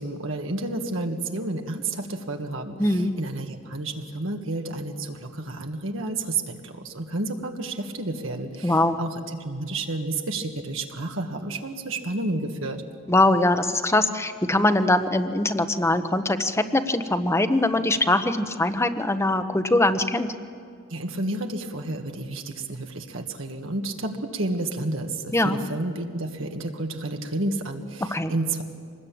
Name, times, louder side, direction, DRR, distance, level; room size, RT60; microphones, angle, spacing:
voice 1, 0.0-12.8 20.9-28.6, right 2 dB, 70° right, 3 dB, 1.8 m, -31 dB
voice 2, 2.8-3.1 8.6-9.0 13.1-20.3 25.3-25.6 28.1-28.3, left 2 dB, 15° left, 9 dB, 1.0 m, -22 dB
25.5 x 20.0 x 8.7 m, 2.2 s
head